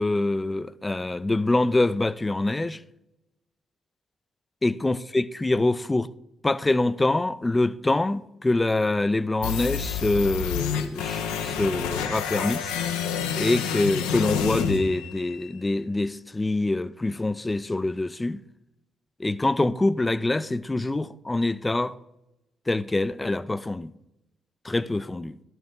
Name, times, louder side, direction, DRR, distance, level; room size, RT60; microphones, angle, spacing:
voice 1, 0.0-2.8 4.6-6.1 6.4-12.7 13.4-18.4 19.2-22.0 22.7-23.9 24.6-25.4, left 2 dB, 20° left, 0.4 m, -25 dB
sound 1, 9.4-15.4, left 8 dB, 80° left, 0.6 m, -29 dB
12.0 x 5.4 x 3.7 m
hypercardioid pair, 45°, 0 cm